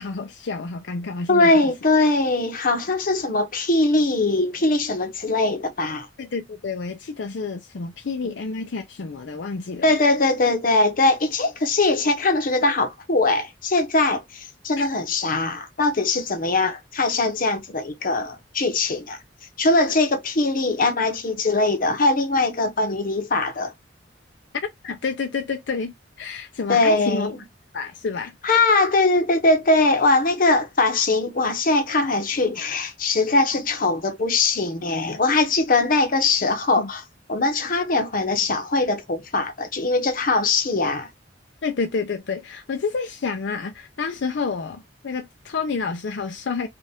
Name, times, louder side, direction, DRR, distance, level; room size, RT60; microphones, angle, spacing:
voice 1, 0.0-1.5 6.2-9.9 14.8-14.9 24.6-27.3 27.7-28.3 36.8-36.9 41.6-46.7, left 4 dB, 75° left, 0.5 m, -29 dB
voice 2, 1.3-6.1 9.8-19.2 19.6-23.7 26.7-27.4 28.4-37.0 37.3-41.1, left 2 dB, 50° left, 0.8 m, -21 dB
4.3 x 2.4 x 3.5 m
head